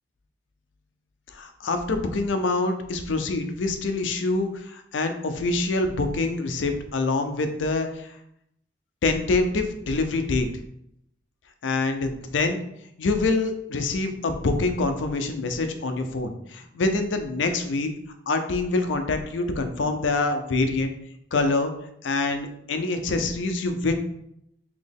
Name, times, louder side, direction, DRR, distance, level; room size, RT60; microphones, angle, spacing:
voice 1, 1.3-8.1 9.0-10.5 11.6-12.6 13.0-17.9 18.3-20.9 21.3-21.7 22.0-23.9, left 3 dB, 90° left, 7 dB, 0.5 m, -25 dB
4.2 x 2.8 x 3.5 m, 0.76 s
head